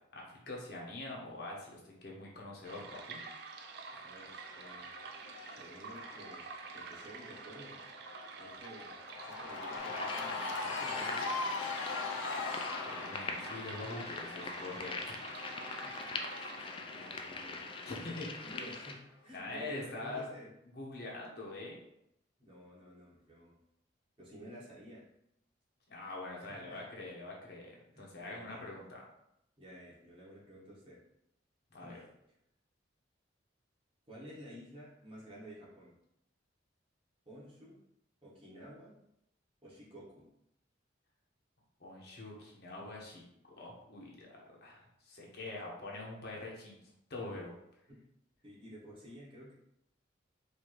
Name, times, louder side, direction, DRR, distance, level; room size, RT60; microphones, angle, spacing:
voice 1, 0.1-3.2 12.8-15.1 17.8-18.5 19.3-20.3 20.7-21.8 25.9-27.7 28.0-29.0 31.7-32.0 41.8-46.8 47.1-47.5, left 2 dB, 55° left, -3 dB, 0.9 m, -44 dB
sound 1, 2.6-17.0, right 5 dB, 55° right, 0.4 m, -49 dB
Cheering / Crowd, 3.6-18.8, left 3 dB, 80° left, 0.5 m, -43 dB
voice 2, 4.0-4.9 5.5-6.5 6.7-7.8 8.3-11.4 15.8-15.9 16.9-17.6 18.4-20.5 22.4-23.6 24.2-25.0 26.4-26.8 27.9-28.7 29.6-31.0 31.8-32.1 34.1-36.0 37.2-37.8 38.2-39.0 39.6-40.3 47.9-48.0 48.4-49.5, equal, 25° right, -7 dB, 1.3 m, -52 dB
sound 2, 9.8-18.9, left 3 dB, 25° left, 0.3 m, -43 dB
4.8 x 2.7 x 3.0 m, 0.80 s
head